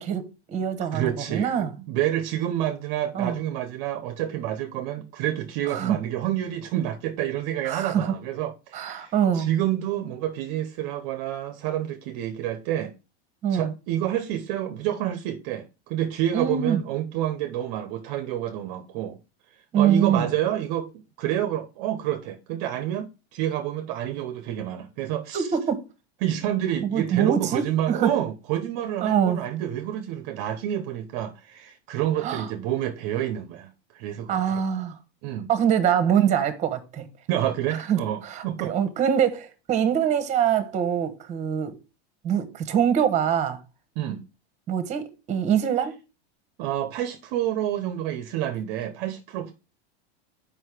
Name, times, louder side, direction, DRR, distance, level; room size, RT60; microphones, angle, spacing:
voice 1, 0.0-1.7 3.1-3.4 5.7-6.0 7.6-8.2 8.7-9.5 13.4-13.7 16.3-16.8 19.7-20.3 25.3-25.8 26.8-28.1 29.0-29.4 32.2-32.5 34.3-35.0 35.5-37.1 37.7-41.7 42.2-43.6 44.7-45.9, right 8 dB, 20° right, 1.2 m, -24 dB
voice 2, 0.9-12.9 13.5-19.2 19.8-25.5 26.2-34.6 35.2-35.5 37.3-38.8 44.0-44.2 46.6-49.5, right 12 dB, 45° right, 0.8 m, -28 dB
7.7 x 5.2 x 4.9 m
supercardioid pair, 160°, 32 cm